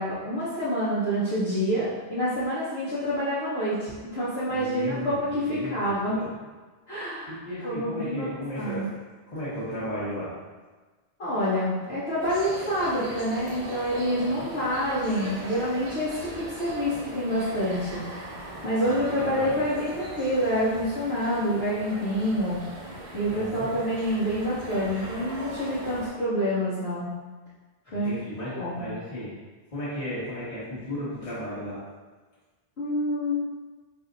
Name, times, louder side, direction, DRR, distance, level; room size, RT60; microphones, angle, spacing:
voice 1, 0.0-6.2 6.9-7.3 7.6-8.9 11.2-18.0 18.6-22.6 23.1-27.1 27.9-28.1 28.5-28.8 32.8-33.3, equal, 75° left, -11 dB, 1.1 m, -27 dB
voice 2, 4.5-6.3 7.3-8.9 9.3-10.3 14.3-14.4 18.8-19.6 23.3-23.7 27.9-29.3 29.7-31.8, equal, 40° left, -11 dB, 1.2 m, -35 dB
sound 1, 12.2-26.1, right 2 dB, 45° right, 0.7 m, -40 dB
4.2 x 2.7 x 2.5 m, 1.3 s
omnidirectional pair, 1.1 m